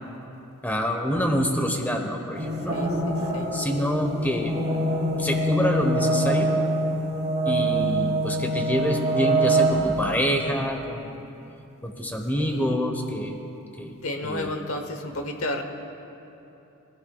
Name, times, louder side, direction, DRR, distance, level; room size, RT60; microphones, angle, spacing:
voice 1, 0.6-2.8 3.5-4.5 5.2-6.6 7.5-11.2 11.8-13.3 13.8-13.9 14.2-14.5, equal, 10° left, 3 dB, 1.0 m, -26 dB
sound 1, 2.3-10.1, right 1 dB, 30° right, 2.4 m, -24 dB
voice 2, 2.7-3.5 12.4-12.7 13.9-15.6, left 1 dB, 70° left, 5 dB, 1.1 m, -32 dB
19.0 x 16.5 x 2.4 m, 3.0 s
head